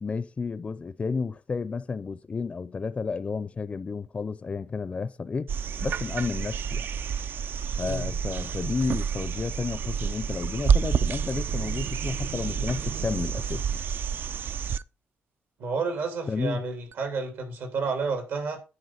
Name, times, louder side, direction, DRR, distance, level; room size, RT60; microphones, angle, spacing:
voice 1, 0.0-5.5 5.8-6.9 7.8-13.8 16.3-16.6, left 4 dB, 30° left, 0.5 m, -31 dB
sound 1, 5.5-14.8 16.9-17.0, right 7 dB, 60° right, 0.4 m, -29 dB
voice 2, 15.6-18.6, right 4 dB, 75° right, 3.0 m, -30 dB
9.7 x 4.8 x 5.7 m
cardioid pair, 85°, 4 cm